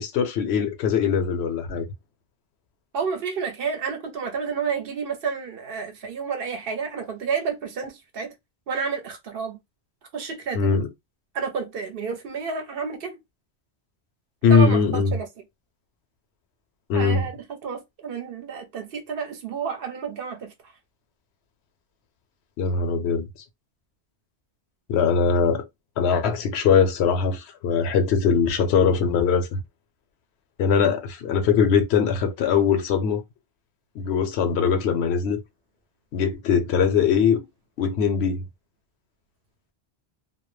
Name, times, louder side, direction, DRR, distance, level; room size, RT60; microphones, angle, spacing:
voice 1, 0.0-1.9 10.5-10.9 14.4-15.2 16.9-17.3 22.6-23.3 24.9-25.6 26.0-29.5 30.6-33.2 34.0-35.4 36.1-37.4 37.8-38.4, left 6 dB, 80° left, 0.8 m, -21 dB
voice 2, 2.9-8.3 8.7-9.6 10.1-10.7 11.3-13.2 14.5-15.3 16.9-20.5, right 6 dB, 65° right, 0.8 m, -30 dB
2.2 x 2.0 x 3.0 m
omnidirectional pair, 1.1 m